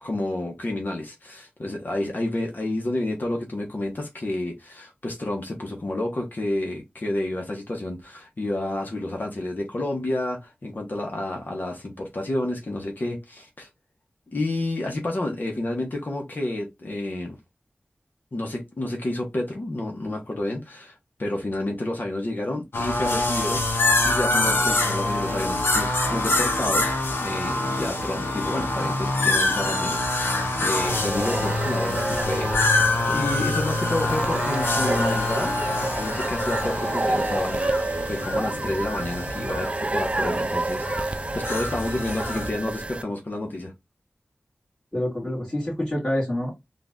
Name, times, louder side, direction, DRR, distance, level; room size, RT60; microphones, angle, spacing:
voice 1, 0.0-13.7 14.3-17.4 18.3-26.9 27.2-43.7, left 1 dB, 55° left, 1.2 m, -30 dB
sound 1, 22.7-42.5, left 2 dB, 85° left, 0.9 m, -25 dB
sound 2, 30.8-43.0, right 2 dB, 30° right, 0.4 m, -29 dB
voice 2, 44.9-46.5, left 1 dB, 25° left, 2.4 m, -27 dB
3.8 x 2.6 x 3.7 m
wide cardioid pair, 60°, 4 cm